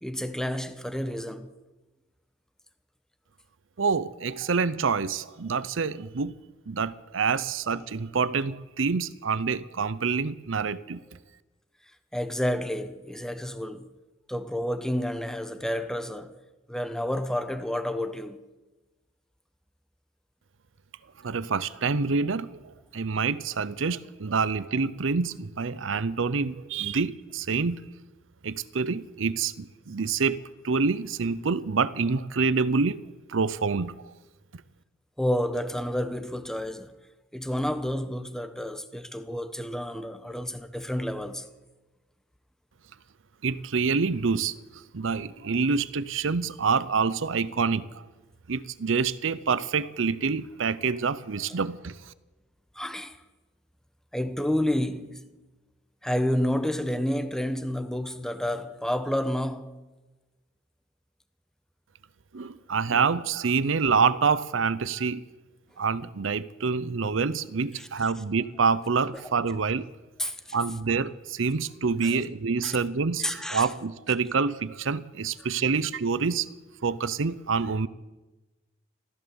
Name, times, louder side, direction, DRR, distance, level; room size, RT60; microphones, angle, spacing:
voice 1, 0.0-1.5 8.9-9.0 12.1-13.9 14.3-16.3 16.7-18.4 35.2-37.0 37.3-41.5 52.7-53.2 54.1-55.2 56.0-59.8 62.4-62.6 63.6-63.7 67.8-68.1 69.1-69.2 70.2-70.6 72.0-72.1 72.6-72.8 73.2-73.7, left 1 dB, 5° left, 0.9 m, -30 dB
voice 2, 3.8-6.3 6.7-11.0 21.2-27.8 28.4-33.0 33.3-34.0 43.4-48.1 48.5-52.1 62.3-65.2 65.8-69.9 70.5-76.5 76.8-77.9, right 5 dB, 70° right, 0.7 m, -27 dB
14.5 x 14.0 x 7.1 m
head